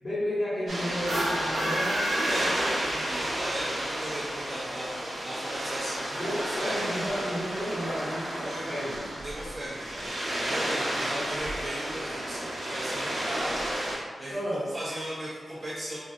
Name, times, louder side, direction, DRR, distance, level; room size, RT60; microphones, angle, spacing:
voice 1, 0.0-2.0 6.2-9.0 10.9-11.2 14.3-14.7, equal, 55° left, -14 dB, 1.1 m, -32 dB
sound 1, 0.7-14.0, right 1 dB, 65° right, 0.9 m, -32 dB
sound 2, 1.0-3.3, equal, 85° right, 1.1 m, -30 dB
voice 2, 2.2-6.9 8.4-8.8 9.2-9.9 10.4-16.0, right 1 dB, 30° right, -9 dB, 0.6 m, -37 dB
3.6 x 2.4 x 2.6 m, 1.5 s
wide cardioid pair, 155°, 0 cm